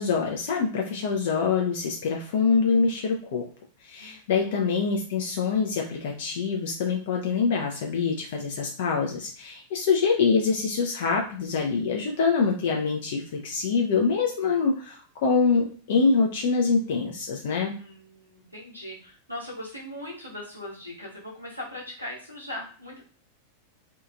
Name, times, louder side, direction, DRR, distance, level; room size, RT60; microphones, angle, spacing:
voice 1, 0.0-3.5 3.8-17.7, left 5 dB, 55° left, 0 dB, 0.4 m, -25 dB
voice 2, 17.8-23.0, left 1 dB, 90° left, -4 dB, 0.9 m, -39 dB
2.7 x 2.3 x 2.4 m, 0.43 s
figure-of-eight pair, 90°, 0 cm